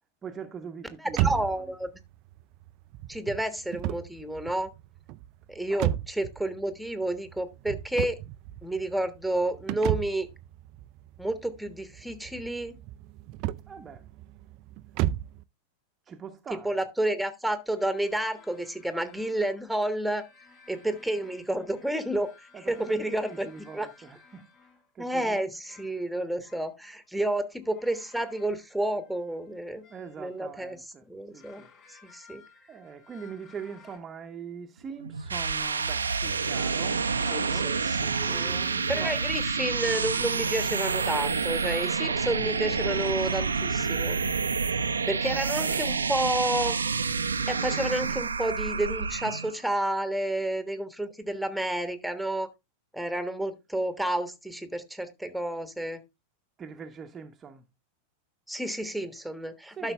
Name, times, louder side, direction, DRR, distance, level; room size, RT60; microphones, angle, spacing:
voice 1, 0.2-1.7 5.7-5.8 13.7-14.1 16.1-16.8 22.5-24.5 24.9-25.5 29.9-31.1 31.3-31.7 32.7-39.2 45.3-46.2 56.6-57.6 59.7-59.9, right 6 dB, 20° right, 0.9 m, -43 dB
voice 2, 1.0-1.9 3.1-4.7 5.5-8.2 8.6-10.3 11.2-12.8 16.6-20.2 20.7-22.3 22.7-23.5 23.7-23.9 25.0-29.8 30.2-30.8 31.1-31.6 31.9-32.4 37.3-38.6 38.9-44.2 45.1-46.8 47.5-52.5 52.9-56.0 58.5-59.9, right 1 dB, ahead, 1.3 m, -30 dB
sound 1, 1.1-15.4, right 14 dB, 40° right, 0.5 m, -34 dB
sound 2, 17.5-24.9 25.6-26.0 26.4-30.6 31.1-34.0, left 5 dB, 35° left, 5.5 m, -57 dB
sound 3, 35.0-49.6, right 5 dB, 75° right, 0.7 m, -28 dB
12.0 x 6.2 x 3.3 m
figure-of-eight pair, 90°, 0 cm